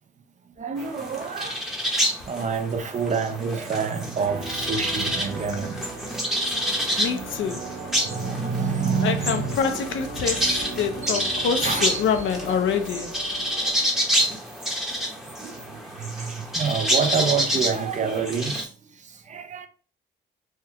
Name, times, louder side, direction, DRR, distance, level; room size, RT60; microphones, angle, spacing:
voice 1, 0.6-1.7 2.3-5.8 6.9-7.4 7.8-9.5 11.0-12.0 13.4-13.5 15.4-18.7 19.0-19.7, right 5 dB, 40° right, 0.5 m, -28 dB
sound 1, 0.8-18.6, equal, ahead, 0.8 m, -28 dB
sound 2, 4.2-13.7, right 3 dB, 55° right, 1.0 m, -37 dB
voice 2, 7.0-7.7 9.0-13.2, left 7 dB, 75° left, 0.6 m, -26 dB
3.5 x 2.3 x 2.9 m
cardioid pair, 90°, 20 cm